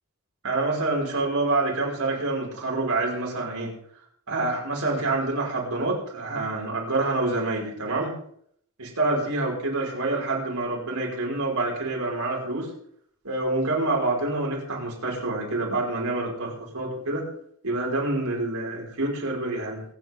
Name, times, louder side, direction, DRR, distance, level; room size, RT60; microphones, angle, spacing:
voice 1, 0.4-3.7 4.3-8.2 8.8-12.7 13.2-17.2 17.6-19.8, right 2 dB, 90° right, -3 dB, 5.8 m, -27 dB
26.0 x 9.0 x 3.8 m, 0.65 s
head